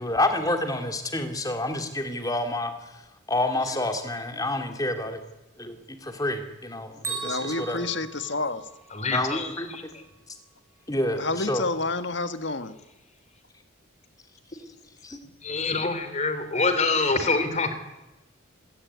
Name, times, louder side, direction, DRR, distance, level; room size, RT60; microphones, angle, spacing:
voice 1, 0.0-2.9 3.3-5.2 5.6-7.8 9.1-9.7 10.9-11.2 11.5-11.6, left 1 dB, 15° left, 6 dB, 2.7 m, -28 dB
Bell, 7.0-9.1, right 5 dB, 15° right, 6.6 m, -37 dB
voice 2, 7.2-8.7 11.2-12.8, left 3 dB, 60° left, 11 dB, 1.6 m, -29 dB
voice 3, 8.9-10.0 15.4-17.7, left 3 dB, 35° left, 10 dB, 3.1 m, -26 dB
26.0 x 17.5 x 9.6 m, 1.0 s
head